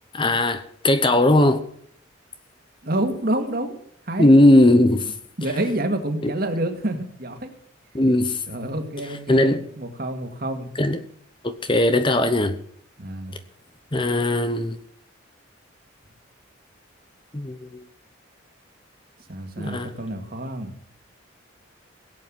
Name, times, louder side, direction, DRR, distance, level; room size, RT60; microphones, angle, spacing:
voice 1, 0.1-1.6 4.2-5.1 6.2-6.3 7.9-8.4 9.3-9.6 10.8-11.0 11.4-12.6 13.9-14.8 17.3-17.8 19.6-19.9, left 1 dB, 25° left, 0.9 m, -18 dB
voice 2, 2.8-4.3 5.4-7.5 8.5-10.7 13.0-13.4 19.3-20.7, right 1 dB, 45° right, 2.1 m, -28 dB
17.0 x 8.4 x 7.6 m
head